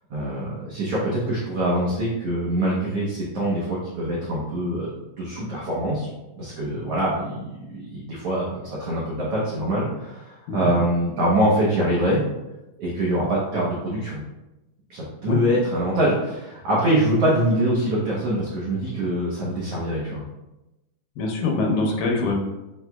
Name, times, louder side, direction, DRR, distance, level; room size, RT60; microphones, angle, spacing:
voice 1, 0.1-4.9 5.2-6.1 6.4-12.2 12.8-14.2 14.9-20.2, right 1 dB, 80° right, -6 dB, 1.3 m, -24 dB
voice 2, 21.2-22.4, left 3 dB, 85° left, 1 dB, 2.5 m, -23 dB
6.1 x 2.9 x 2.3 m, 0.98 s
omnidirectional pair, 3.8 m